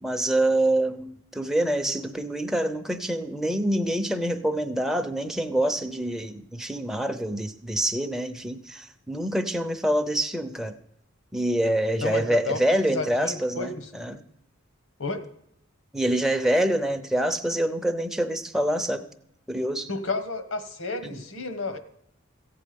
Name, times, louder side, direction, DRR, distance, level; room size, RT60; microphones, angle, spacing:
voice 1, 0.0-10.7 11.3-14.2 15.9-19.1 19.5-19.9 21.0-21.2, right 1 dB, ahead, 4 dB, 0.6 m, -26 dB
voice 2, 12.0-13.9 15.0-15.2 19.9-21.8, left 3 dB, 80° left, 10 dB, 1.4 m, -31 dB
15.5 x 8.5 x 5.2 m, 0.75 s
head